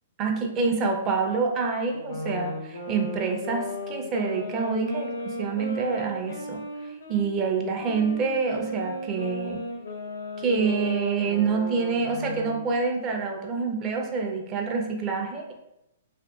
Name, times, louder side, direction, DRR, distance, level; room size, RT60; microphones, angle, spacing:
voice 1, 0.2-6.6 7.1-9.6 10.4-15.5, right 4 dB, 30° right, 2 dB, 0.5 m, -27 dB
sound 1, 1.9-7.3 7.8-12.7, left 1 dB, 80° left, 0.5 m, -35 dB
2.6 x 2.6 x 2.3 m, 0.85 s
hypercardioid pair, 125°, 0 cm